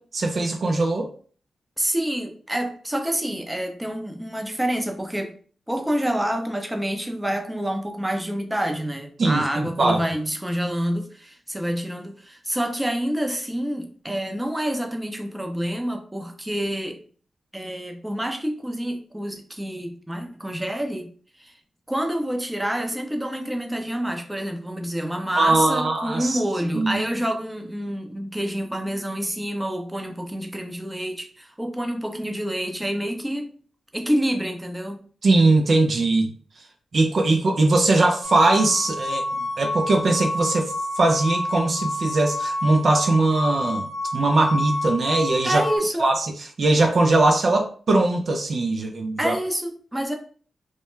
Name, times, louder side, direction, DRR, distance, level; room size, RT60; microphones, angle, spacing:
voice 1, 0.1-1.1 9.2-10.0 25.3-26.4 26.7-27.0 35.2-36.3 36.9-45.6 46.0-49.3, right 2 dB, 60° right, 0.4 m, -21 dB
voice 2, 1.8-5.3 5.7-17.0 17.5-21.1 21.4-21.5 21.9-33.5 33.9-35.0 45.4-46.1 49.2-50.1, equal, 10° right, 0.6 m, -27 dB
sound 1, 38.2-45.8, left 1 dB, 60° left, 0.4 m, -29 dB
2.1 x 2.1 x 3.0 m
supercardioid pair, 45°, 0 cm